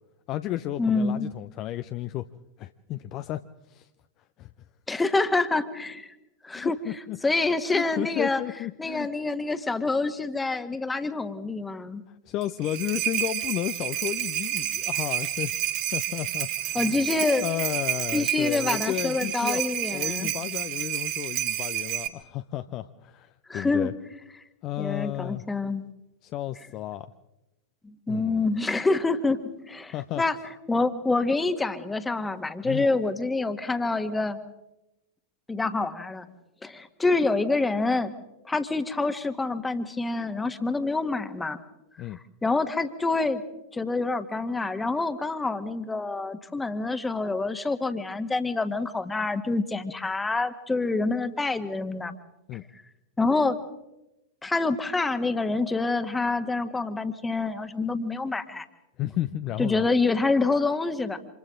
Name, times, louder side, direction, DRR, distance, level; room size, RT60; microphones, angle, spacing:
voice 1, 0.3-2.3 2.6-3.9 4.4-4.5 6.5-7.2 7.7-9.1 12.1-15.5 15.9-17.0 17.4-19.6 19.9-23.9 24.6-25.4 26.2-27.1 28.1-28.5 29.9-30.2 32.6-32.9 42.0-42.2 52.5-52.6 59.0-59.9, left 13 dB, 35° left, 11 dB, 0.7 m, -33 dB
voice 2, 0.8-1.3 4.9-6.1 6.4-8.4 8.8-12.0 16.7-17.5 18.1-20.3 23.5-23.9 24.8-25.8 27.8-30.4 30.7-34.4 35.5-36.3 36.6-38.1 38.4-41.6 42.4-43.4 43.7-52.1 53.2-53.6 54.4-58.7 59.6-61.2, left 3 dB, 10° left, 10 dB, 1.5 m, -27 dB
sound 1, 12.4-22.1, right 12 dB, 40° right, 1.6 m, -30 dB
29.5 x 27.0 x 3.8 m, 0.95 s
figure-of-eight pair, 90°, 0 cm